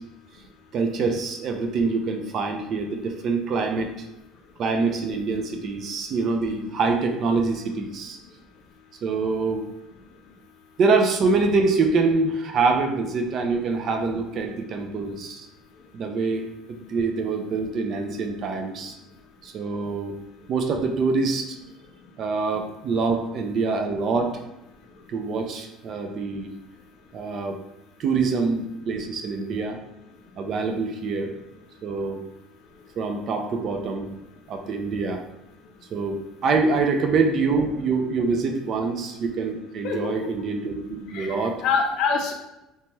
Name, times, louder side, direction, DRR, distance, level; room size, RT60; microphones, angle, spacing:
voice 1, 0.7-4.1 4.6-8.2 9.0-9.7 10.8-15.5 15.9-19.0 19.4-20.2 20.5-21.5 22.2-24.4 25.1-26.5 27.1-27.6 28.0-29.8 30.4-31.3 31.8-32.2 33.0-34.1 34.5-35.2 35.9-41.6, right 4 dB, 40° right, 4 dB, 0.3 m, -25 dB
voice 2, 39.8-40.3 41.1-42.3, left 5 dB, 55° left, 3 dB, 0.4 m, -25 dB
2.8 x 2.2 x 3.0 m, 0.93 s
cardioid pair, 160°, 0 cm